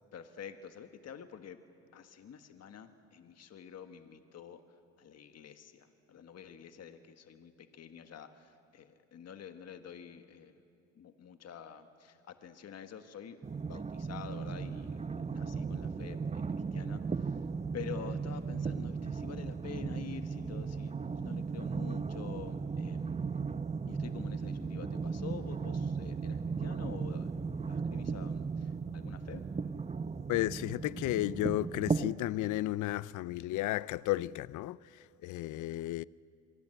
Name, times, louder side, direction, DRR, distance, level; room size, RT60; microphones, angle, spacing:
voice 1, 0.1-1.6 1.9-10.6 10.9-17.5 17.7-23.2 23.9-27.3 27.7-29.5, left 7 dB, 55° left, 1.5 m, -48 dB
sound 1, 13.4-32.1, right 5 dB, 20° right, 0.7 m, -36 dB
voice 2, 30.3-36.0, left 16 dB, 80° left, 0.5 m, -33 dB
26.5 x 23.5 x 7.8 m
cardioid pair, 90°, 30 cm